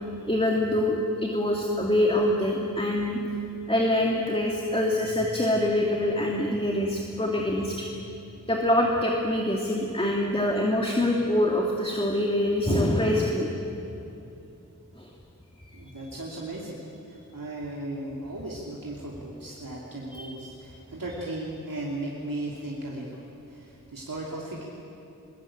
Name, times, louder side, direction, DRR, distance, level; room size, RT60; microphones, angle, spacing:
voice 1, 0.3-3.2 3.7-7.9 8.5-13.5 15.0-15.1 20.1-20.3, left 1 dB, 15° left, -1 dB, 2.5 m, -25 dB
voice 2, 15.7-16.8 17.1-23.2 23.5-24.6, right 1 dB, 85° right, -4 dB, 3.1 m, -36 dB
23.5 x 22.0 x 8.9 m, 2.8 s
wide cardioid pair, 55°, 33 cm